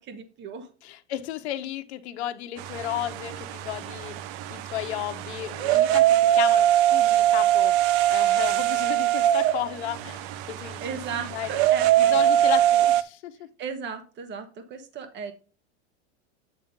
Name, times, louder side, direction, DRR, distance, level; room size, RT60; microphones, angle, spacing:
voice 1, 0.0-0.7 10.8-12.2 13.6-15.3, right 6 dB, 30° right, 8 dB, 1.5 m, -36 dB
voice 2, 0.8-4.1 4.5-7.7 8.1-10.8 11.1-11.6 12.0-13.3, left 12 dB, 75° left, 9 dB, 1.1 m, -33 dB
sound 1, 2.6-13.0, right 12 dB, 50° right, 0.6 m, -22 dB
9.2 x 3.7 x 5.5 m, 0.35 s
supercardioid pair, 120°, 34 cm